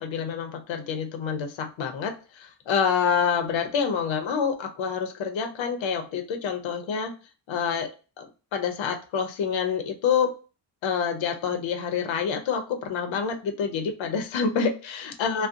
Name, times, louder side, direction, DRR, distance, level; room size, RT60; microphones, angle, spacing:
voice 1, 0.0-2.1 2.4-7.1 7.5-7.9 8.2-8.3 8.5-10.3 10.8-15.5, left 6 dB, 80° left, 5 dB, 0.6 m, -27 dB
2.6 x 2.1 x 2.4 m, 0.33 s
wide cardioid pair, 135°, 45 cm